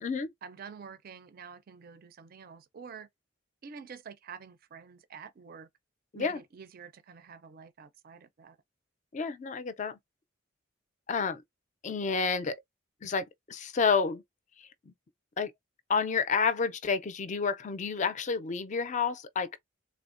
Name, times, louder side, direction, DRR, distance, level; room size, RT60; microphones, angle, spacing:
voice 1, 0.4-3.1 3.6-5.7 6.1-8.6, right 6 dB, 45° right, 0.4 m, -48 dB
voice 2, 9.1-10.0 11.1-11.4 11.8-12.6 13.0-14.2 14.6-14.9 15.4-15.5 15.9-19.5, left 5 dB, 40° left, 0.4 m, -30 dB
3.4 x 2.1 x 2.5 m
head